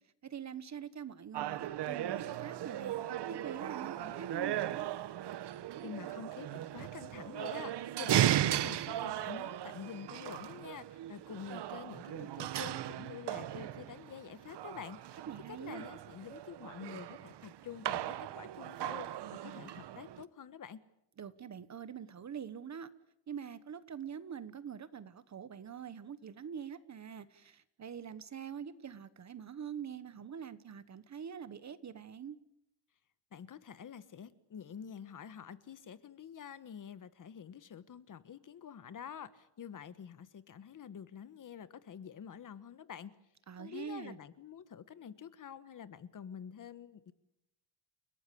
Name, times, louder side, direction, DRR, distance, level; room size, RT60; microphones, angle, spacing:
voice 1, 0.2-3.0 3.3-4.9 15.3-15.9 21.2-22.9 23.3-32.4 43.5-44.2, right 8 dB, 35° right, 15 dB, 1.2 m, -44 dB
sound 1, 1.3-20.2, right 12 dB, 60° right, 1.0 m, -37 dB
voice 2, 5.8-15.2 15.5-19.1 19.4-20.8 33.3-43.1 43.6-47.1, left 8 dB, 40° left, 14 dB, 1.3 m, -48 dB
30.0 x 17.5 x 8.5 m, 0.83 s
cardioid pair, 155°, 48 cm